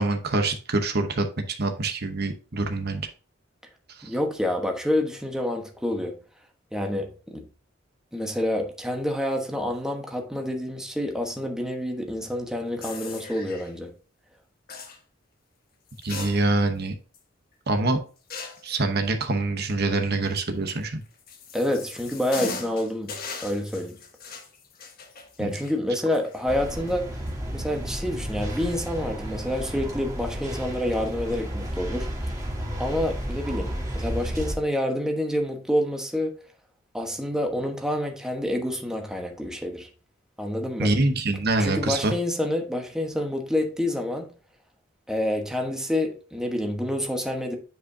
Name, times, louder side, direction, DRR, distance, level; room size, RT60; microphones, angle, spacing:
voice 1, 0.0-3.1 4.0-4.1 16.0-16.9 17.7-18.0 18.6-21.0 25.4-25.5 40.8-42.1, right 2 dB, 55° right, 0.9 m, -25 dB
voice 2, 4.0-6.2 6.7-7.4 8.1-13.9 21.5-23.1 23.4-24.0 25.4-27.1 27.5-32.3 32.8-36.3 36.9-39.9 40.4-40.9 41.6-44.3 45.1-47.5, left 1 dB, 5° right, 1.2 m, -28 dB
sound 1, 12.8-13.7 14.7-15.0 15.9-16.8 17.1-17.2 18.3-18.7 20.8-26.9 27.3-27.4 28.3-28.6, left 4 dB, 50° left, 1.4 m, -39 dB
sound 2, 26.5-34.5, equal, 20° right, 1.8 m, -32 dB
9.3 x 5.2 x 2.7 m
head